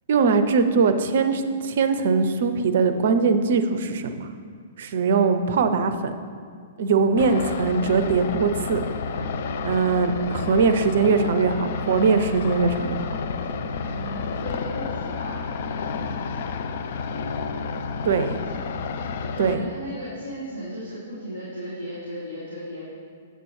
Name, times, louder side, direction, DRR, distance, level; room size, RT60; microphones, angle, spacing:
voice 1, 0.1-4.3 4.8-6.1 6.8-8.8 9.6-13.0 18.0-18.4 19.4-19.6, right 5 dB, 55° right, 10 dB, 0.4 m, -21 dB
sound 1, 7.2-19.6, left 5 dB, 50° left, 0.4 m, -30 dB
voice 2, 13.9-15.4 18.3-18.6 19.4-22.8, equal, 80° left, -10 dB, 1.8 m, -35 dB
7.9 x 7.5 x 3.2 m, 2.2 s
figure-of-eight pair, 110°, 0 cm